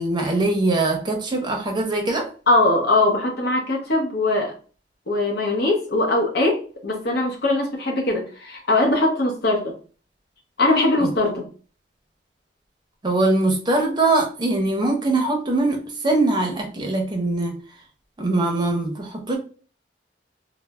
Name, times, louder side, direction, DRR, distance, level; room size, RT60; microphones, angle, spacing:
voice 1, 0.0-2.3 11.0-11.1 13.0-17.5 18.2-19.4, right 2 dB, 25° right, 0.6 m, -22 dB
voice 2, 2.5-4.5 5.1-9.7 10.6-11.5, left 2 dB, 60° left, 0.8 m, -21 dB
3.1 x 2.0 x 2.3 m
head